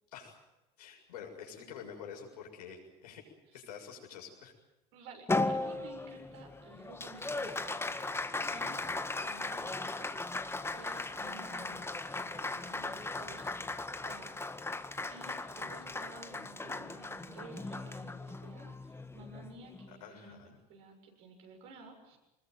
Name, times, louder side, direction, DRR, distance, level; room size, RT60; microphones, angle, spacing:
voice 1, 0.8-3.2 3.5-4.5 19.9-20.6, left 7 dB, 80° left, 0 dB, 6.9 m, -48 dB
voice 2, 4.9-8.0 8.5-8.8 9.2-10.1 10.7-11.8 12.1-13.5 14.0-14.4 14.6-20.4 20.7-22.2, right 3 dB, 70° right, 2 dB, 7.2 m, -53 dB
Applause, 5.3-19.9, left 2 dB, 10° left, 1.8 m, -37 dB
23.5 x 21.0 x 9.3 m, 0.97 s
hypercardioid pair, 80°, 20 cm